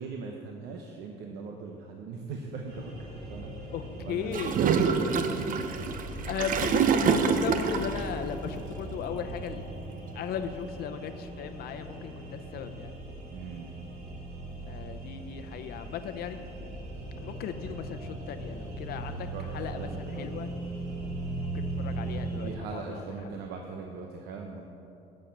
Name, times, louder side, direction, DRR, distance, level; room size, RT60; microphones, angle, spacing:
voice 1, 0.0-3.5 4.0-6.0 7.0-7.5 13.3-13.7 19.3-20.4 22.4-24.6, right 4 dB, 85° right, 2 dB, 0.8 m, -40 dB
sound 1, 2.7-22.5, right 2 dB, 70° right, 2.3 m, -39 dB
voice 2, 3.7-4.7 6.3-9.6 10.1-12.9 14.7-16.4 17.2-20.5 21.5-23.3, left 8 dB, 65° left, 8 dB, 0.7 m, -37 dB
Gurgling / Toilet flush, 4.3-8.1, right 6 dB, 55° right, 0.7 m, -26 dB
8.1 x 6.6 x 7.4 m, 2.8 s
cardioid pair, 110°, 17 cm